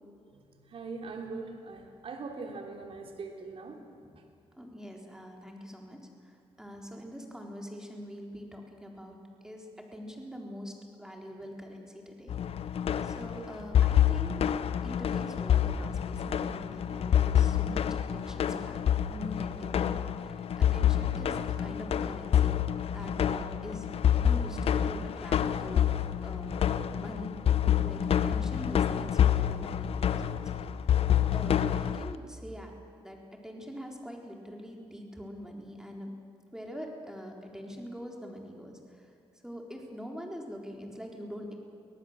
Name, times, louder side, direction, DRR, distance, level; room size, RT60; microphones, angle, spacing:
voice 1, 0.7-3.8, right 4 dB, 55° right, 3 dB, 3.3 m, -41 dB
voice 2, 4.6-6.0 6.2-9.2 9.4-12.4 13.0-14.4 14.8-22.6 22.9-23.9 24.1-24.6 24.8-26.6 27.0-30.7 31.3-32.7 33.0-36.2 36.5-39.1 39.4-41.5, equal, 5° right, 1 dB, 4.1 m, -44 dB
sound 1, 12.3-32.1, left 9 dB, 60° left, 0.8 m, -27 dB
24.5 x 18.0 x 7.5 m, 2.5 s
cardioid pair, 90°, 11 cm